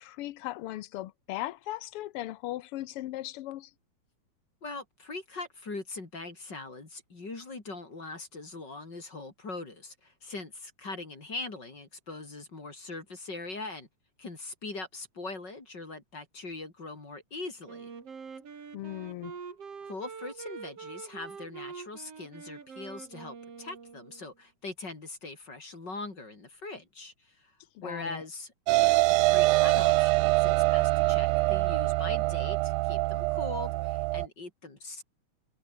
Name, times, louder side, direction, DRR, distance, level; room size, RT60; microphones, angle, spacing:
voice 1, 0.0-3.7 18.7-19.3 27.7-28.2, left 15 dB, 85° left, 1.2 m, -38 dB
voice 2, 4.6-13.9 14.2-17.9 19.8-28.5 28.8-35.0, left 3 dB, 35° left, 4.1 m, -41 dB
Wind instrument woodwind instrument, 17.7-24.3, right 5 dB, 50° right, 4.2 m, -45 dB
sound 1, 28.7-34.3, right 20 dB, 90° right, 2.0 m, -24 dB
omnidirectional pair, 3.5 m